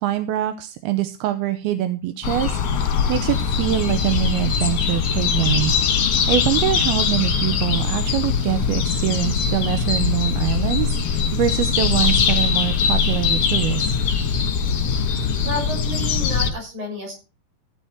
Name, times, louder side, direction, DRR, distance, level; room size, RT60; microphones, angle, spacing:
voice 1, 0.0-13.9, right 12 dB, 80° right, 10 dB, 2.7 m, -24 dB
sound 1, 2.2-16.5, left 6 dB, 55° left, 1.8 m, -21 dB
voice 2, 15.4-17.2, left 1 dB, 60° right, 0 dB, 8.2 m, -30 dB
15.5 x 10.0 x 4.5 m, 0.33 s
omnidirectional pair, 4.6 m